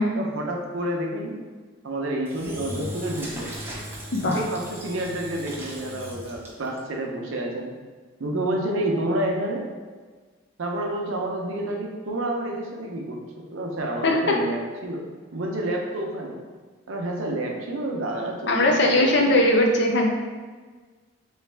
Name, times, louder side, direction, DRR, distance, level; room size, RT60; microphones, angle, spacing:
voice 1, 0.1-1.4 1.8-3.5 4.2-7.7 8.2-9.7 10.6-15.0 15.3-16.4 16.9-19.4, right 1 dB, 75° right, 0 dB, 0.6 m, -29 dB
Engine / Drill, 2.2-6.8, right 1 dB, 10° right, 0.6 m, -38 dB
voice 2, 4.1-4.4 14.0-14.4 18.5-20.1, left 1 dB, 55° left, 1 dB, 0.6 m, -20 dB
3.4 x 3.2 x 3.3 m, 1.4 s
head